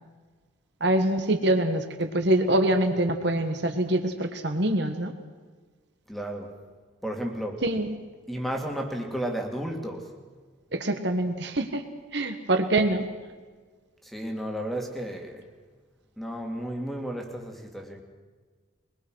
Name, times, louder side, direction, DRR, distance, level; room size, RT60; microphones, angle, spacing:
voice 1, 0.8-5.1 7.6-7.9 10.7-11.8 12.1-13.1, right 1 dB, 55° right, 6 dB, 1.5 m, -25 dB
voice 2, 6.1-6.6 7.0-7.6 8.3-10.1 14.0-15.5 16.2-18.0, right 1 dB, ahead, 3 dB, 2.2 m, -33 dB
22.5 x 21.5 x 6.3 m, 1.5 s
head